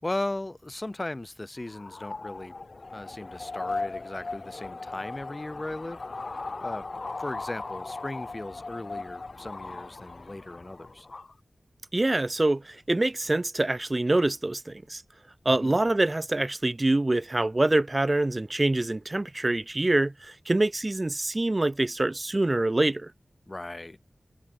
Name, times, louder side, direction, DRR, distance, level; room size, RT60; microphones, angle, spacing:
voice 1, 0.0-2.5 2.9-6.3 6.6-6.8 7.2-11.1 15.5-15.8 23.5-24.0, left 2 dB, 30° left, 6.2 m, -37 dB
sound 1, 1.6-11.3, left 3 dB, 55° left, 3.9 m, -38 dB
voice 2, 11.9-15.0 15.5-23.1, right 2 dB, 30° right, 2.1 m, -25 dB
wide cardioid pair, 80°, 0 cm